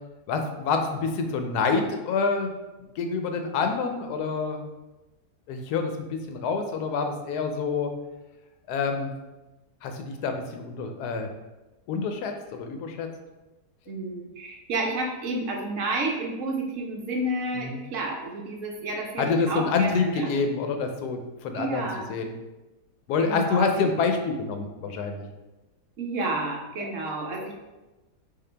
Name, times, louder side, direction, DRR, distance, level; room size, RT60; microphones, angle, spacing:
voice 1, 0.3-2.5 3.0-4.6 5.5-7.9 8.7-9.1 9.8-11.3 11.9-13.1 17.5-17.8 19.2-22.3 23.1-25.2 26.8-26.9, left 4 dB, 75° left, 5 dB, 1.1 m, -27 dB
voice 2, 13.9-20.3 21.5-22.1 23.2-23.9 26.0-27.5, right 2 dB, 65° right, 0 dB, 0.8 m, -30 dB
4.0 x 3.8 x 3.3 m, 1.1 s
omnidirectional pair, 1.8 m